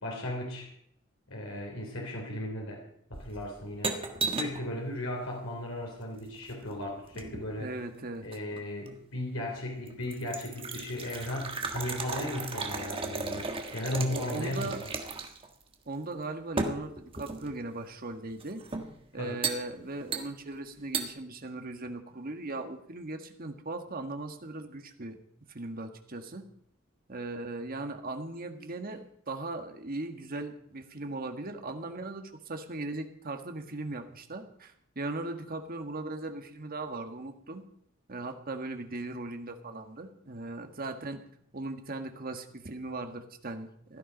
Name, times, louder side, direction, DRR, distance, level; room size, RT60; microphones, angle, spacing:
voice 1, 0.0-0.7 1.3-2.8 3.1-4.0 4.3-7.7 8.2-14.8 19.2-19.4, left 1 dB, 80° left, 0 dB, 3.3 m, -36 dB
sound 1, 3.1-4.7 6.1-7.5 8.3-9.0 9.5-9.6 9.9-15.5 15.7-15.8 16.6-17.6 18.4-18.9 19.4-19.6 20.1-20.6 20.9-21.1, right 4 dB, 25° right, 1.5 m, -35 dB
voice 2, 7.6-8.3 13.7-14.8 15.9-18.6 19.1-26.4 27.1-37.6 38.1-41.2 41.5-44.0, right 2 dB, 45° right, 6 dB, 1.7 m, -38 dB
16.0 x 13.0 x 5.2 m, 0.69 s
head